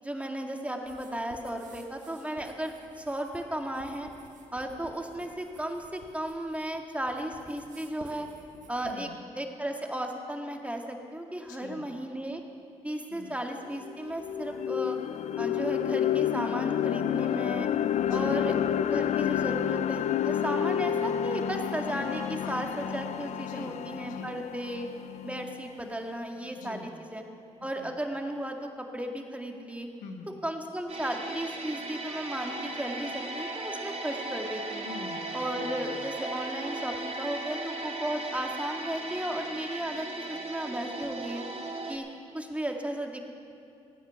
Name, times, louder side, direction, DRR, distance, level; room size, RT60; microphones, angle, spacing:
voice 1, 0.0-4.1 4.5-8.3 8.7-9.1 9.4-12.4 12.8-15.0 15.4-17.7 18.1-24.9 25.2-27.2 27.6-29.9 30.4-34.9 35.3-41.5 41.9-42.1 42.3-43.3, right 1 dB, 10° right, 3 dB, 2.0 m, -35 dB
sound 1, 0.8-8.9, right 4 dB, 70° right, 1.7 m, -54 dB
voice 2, 8.8-9.4 11.5-12.0 13.1-13.4 18.1-18.5 22.3-22.7 23.4-24.4 26.5-27.0 27.6-27.9 30.0-30.4 34.8-35.9, left 4 dB, 90° left, 5 dB, 1.2 m, -46 dB
sound 2, 13.3-13.4 13.8-25.8, left 9 dB, 65° left, 0.5 m, -30 dB
sound 3, 30.9-42.0, right 2 dB, 50° right, 1.8 m, -37 dB
16.5 x 9.4 x 6.9 m, 2.4 s
supercardioid pair, 50°, 13 cm